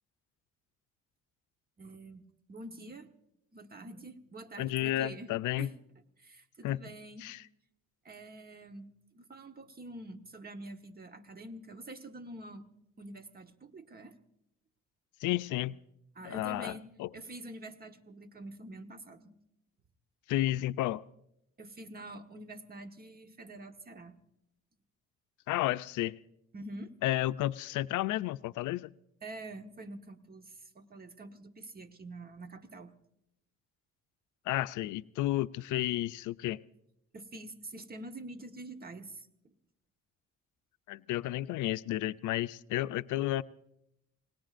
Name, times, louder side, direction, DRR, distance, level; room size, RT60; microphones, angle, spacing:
voice 1, 1.8-3.1 3.5-5.3 5.6-5.8 6.2-7.3 8.0-12.7 13.0-14.2 16.1-19.3 21.6-24.2 26.5-26.9 29.2-32.9 37.1-39.5, right 2 dB, 30° right, 7 dB, 1.3 m, -46 dB
voice 2, 4.6-5.7 6.6-6.8 7.2-7.4 15.2-15.8 16.2-17.1 20.3-21.0 25.5-26.2 27.0-28.9 34.5-36.6 40.9-43.4, left 15 dB, 80° left, 15 dB, 0.5 m, -32 dB
28.5 x 18.5 x 2.5 m, 0.80 s
cardioid pair, 90°, 30 cm